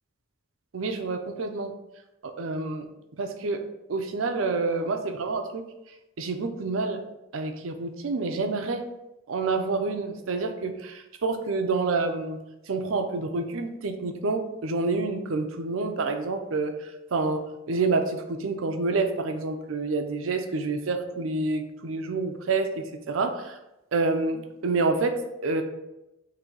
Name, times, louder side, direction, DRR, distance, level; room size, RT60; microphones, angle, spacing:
voice 1, 0.7-1.7 2.4-2.8 3.2-3.6 3.9-5.6 6.2-7.0 7.3-8.9 9.3-12.4 12.7-16.7 17.1-23.6 23.9-25.2 25.4-25.6, right 3 dB, 85° right, 6 dB, 0.5 m, -28 dB
3.9 x 2.7 x 4.6 m, 0.93 s
head